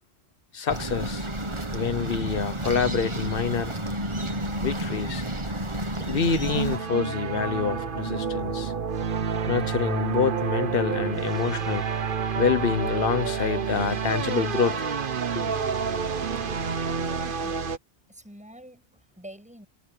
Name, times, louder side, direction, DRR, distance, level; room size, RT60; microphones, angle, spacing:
voice 1, 0.5-1.3 1.7-3.8 4.6-5.2 6.1-8.7 9.5-11.9 12.4-14.8 15.4-15.5, left 6 dB, 55° left, 1.2 m, -26 dB
sound 1, 0.7-6.8, right 1 dB, 25° right, 1.6 m, -31 dB
sound 2, 6.4-17.8, right 6 dB, 50° right, 1.1 m, -29 dB
voice 2, 16.9-17.7 18.1-19.7, equal, 5° right, 7.6 m, -47 dB
omnidirectional pair, 1.2 m